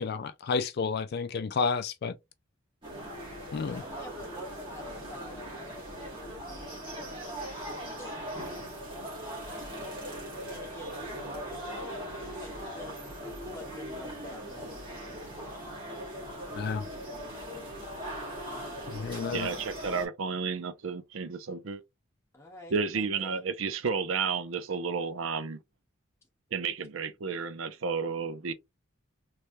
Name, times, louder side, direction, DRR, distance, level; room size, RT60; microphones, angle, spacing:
voice 1, 0.0-2.1 3.5-3.8 16.6-16.9 18.9-19.5, left 5 dB, 50° left, 0.3 m, -31 dB
sound 1, 2.8-20.1, equal, 25° right, 1.6 m, -40 dB
voice 2, 3.7-7.1 7.7-8.3 10.4-15.5 22.3-23.4, left 1 dB, 10° left, 1.3 m, -48 dB
voice 3, 19.3-21.8 22.7-25.6 26.5-28.5, right 5 dB, 70° right, 0.5 m, -32 dB
3.3 x 3.2 x 2.6 m
head